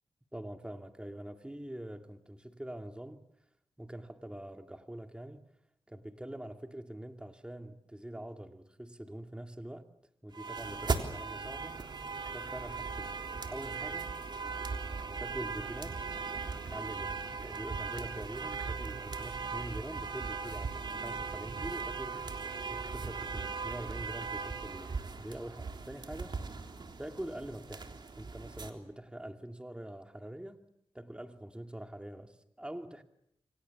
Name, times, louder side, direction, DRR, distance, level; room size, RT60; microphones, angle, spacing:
voice 1, 0.3-3.2 3.8-5.4 5.9-9.9 10.2-11.8 12.2-13.2 13.5-14.1 15.2-16.0 16.7-22.2 22.7-26.4 27.0-27.9 28.2-30.6 30.9-33.0, right 1 dB, 10° right, 2.6 m, -44 dB
sound 1, 10.3-28.7, right 4 dB, 55° right, 3.5 m, -38 dB
28.5 x 25.0 x 7.2 m
cardioid pair, 60°, 9 cm